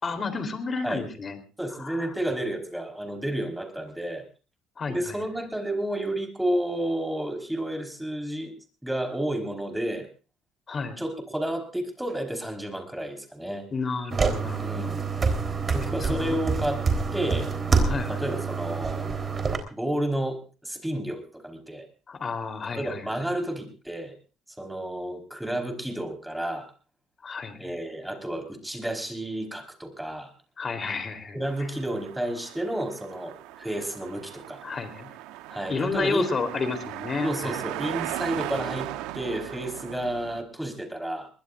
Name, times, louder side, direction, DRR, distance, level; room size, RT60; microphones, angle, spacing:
voice 1, 0.0-1.4 1.8-2.2 4.8-5.2 10.7-11.0 13.7-14.9 16.0-16.4 17.1-17.4 17.8-18.2 22.1-23.1 27.2-27.7 30.6-31.7 34.6-35.1 35.7-37.6, left 4 dB, 35° left, 8 dB, 3.6 m, -31 dB
voice 2, 1.6-4.2 4.9-8.5 8.8-10.1 11.0-13.7 14.6-15.0 15.7-16.8 17.1-17.6 18.1-19.2 19.7-21.9 22.8-24.1 24.6-26.7 27.6-30.3 31.3-34.6 35.5-36.3 37.2-38.9 39.1-41.3, right 1 dB, 5° right, 5 dB, 4.5 m, -31 dB
sound 1, 14.1-19.6, right 4 dB, 30° right, 3.9 m, -26 dB
sound 2, 31.4-40.4, right 14 dB, 85° right, 1.0 m, -38 dB
22.5 x 20.0 x 2.6 m, 0.34 s
cardioid pair, 95°, 0 cm